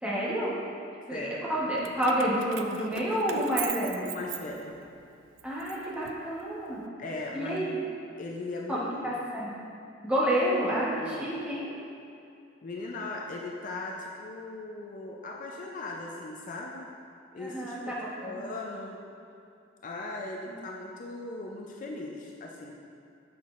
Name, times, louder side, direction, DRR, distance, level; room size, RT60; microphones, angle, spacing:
voice 1, 0.0-0.5 1.1-4.0 5.4-6.8 7.3-7.7 8.7-9.6 10.0-11.7 17.4-18.4, equal, 5° right, -7 dB, 1.0 m, -29 dB
voice 2, 1.1-1.5 4.0-4.8 7.0-7.9 8.2-9.1 11.0-11.3 12.6-16.8 17.3-17.9 18.2-19.0 19.8-22.8, left 2 dB, 45° left, -1 dB, 0.5 m, -38 dB
Keys jangling, 1.8-4.9 5.4-6.7, right 9 dB, 90° right, 0.3 m, -39 dB
7.1 x 6.0 x 2.5 m, 2.5 s
head